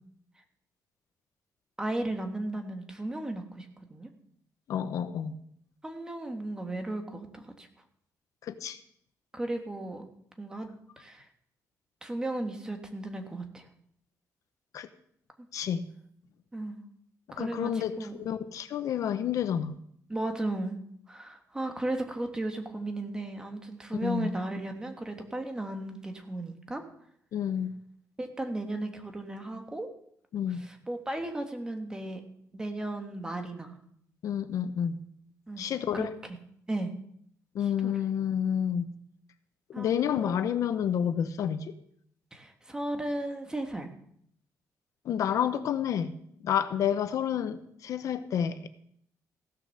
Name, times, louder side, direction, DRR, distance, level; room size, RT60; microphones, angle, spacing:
voice 1, 1.8-4.1 5.8-7.7 9.3-10.1 10.4-10.7 11.0-11.3 12.0-13.7 16.5-16.8 17.3-18.2 20.1-20.8 21.1-26.8 28.2-29.9 30.5-32.2 32.5-33.8 35.5-35.7 35.9-36.1 36.7-36.9 37.6-37.9 39.7-40.4 42.3-43.9, right 2 dB, 10° right, 5 dB, 1.3 m, -35 dB
voice 2, 4.7-5.4 8.4-8.8 14.7-14.9 15.5-15.8 17.4-19.8 24.0-24.3 27.3-27.7 30.3-30.6 34.2-35.0 35.6-36.1 37.5-38.9 39.7-41.7 45.0-46.2 46.4-48.7, left 9 dB, 65° left, 11 dB, 0.8 m, -29 dB
15.5 x 6.7 x 6.6 m, 0.68 s
cardioid pair, 165°, 6 cm